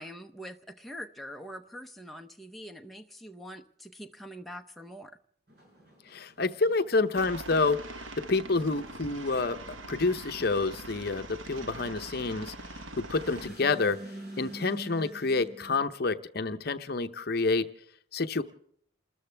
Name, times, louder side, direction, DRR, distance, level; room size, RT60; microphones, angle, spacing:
voice 1, 0.0-5.2, equal, ahead, 3 dB, 0.7 m, -44 dB
sound 1, 5.5-15.8, right 1 dB, 50° right, 5.8 m, -47 dB
voice 2, 6.1-7.8 8.3-9.6 9.9-12.5 13.1-14.0 14.4-17.7 18.1-18.4, left 3 dB, 50° left, 10 dB, 0.8 m, -28 dB
Aircraft, 7.2-13.5, right 2 dB, 80° right, 1.2 m, -43 dB
29.0 x 13.5 x 3.4 m, 0.66 s
head